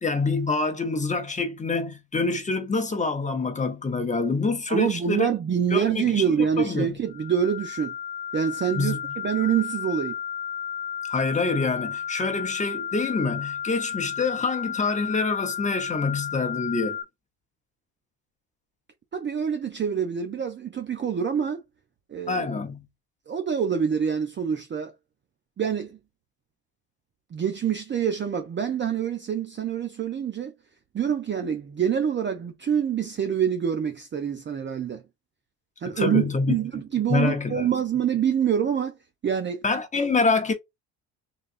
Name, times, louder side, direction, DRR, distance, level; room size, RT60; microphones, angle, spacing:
voice 1, 0.0-5.3 5.7-7.0 8.7-9.0 11.1-17.0 22.3-22.8 35.8-36.6 37.1-37.7 39.6-40.5, left 3 dB, 20° left, 0.9 m, -26 dB
voice 2, 4.7-7.9 8.3-10.1 19.1-21.6 22.1-22.5 23.3-24.9 25.6-26.0 27.3-30.5 30.9-35.0 35.8-39.0 39.2-39.6, right 8 dB, 30° right, 0.5 m, -26 dB
sound 1, 7.1-17.0, left 9 dB, 70° left, 0.8 m, -33 dB
4.0 x 3.3 x 2.5 m
cardioid pair, 135°, 41 cm